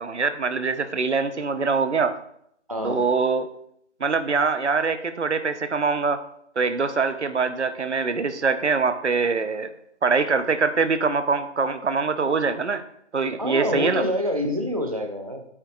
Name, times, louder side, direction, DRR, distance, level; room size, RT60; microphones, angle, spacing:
voice 1, 0.0-2.2 2.8-3.5 4.0-6.2 6.6-9.7 10.0-12.8 13.1-14.0, right 4 dB, 65° right, 10 dB, 0.9 m, -23 dB
voice 2, 2.7-3.0 13.4-15.5, left 1 dB, 30° right, 2 dB, 0.5 m, -26 dB
11.5 x 8.4 x 2.5 m, 0.73 s
figure-of-eight pair, 160°, 37 cm